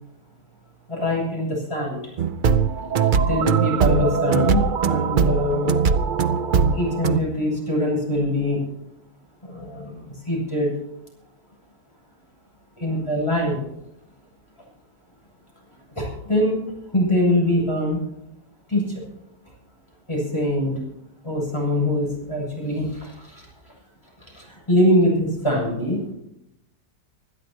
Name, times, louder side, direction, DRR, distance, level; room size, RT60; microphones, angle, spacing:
voice 1, 0.9-2.0 3.2-5.7 6.7-8.6 9.4-10.7 12.8-13.6 16.0-16.6 16.9-18.0 18.7-18.9 20.1-20.8 21.2-23.3 24.3-26.1, left 1 dB, 15° left, -3 dB, 7.3 m, -23 dB
sound 1, 2.2-7.2, right 6 dB, 85° right, 0.4 m, -20 dB
25.5 x 13.0 x 2.9 m, 0.80 s
omnidirectional pair, 1.8 m